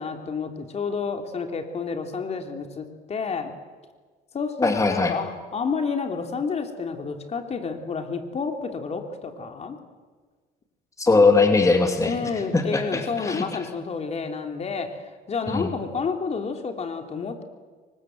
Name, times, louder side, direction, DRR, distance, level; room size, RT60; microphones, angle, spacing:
voice 1, 0.0-3.5 4.3-9.8 12.0-15.0 15.3-17.4, left 5 dB, 40° left, 5 dB, 3.4 m, -30 dB
voice 2, 4.6-5.1 11.0-12.2 12.5-13.4 15.5-15.7, left 3 dB, 20° left, 4 dB, 2.9 m, -20 dB
29.0 x 24.5 x 7.9 m, 1.5 s
cardioid pair, 110°, 17 cm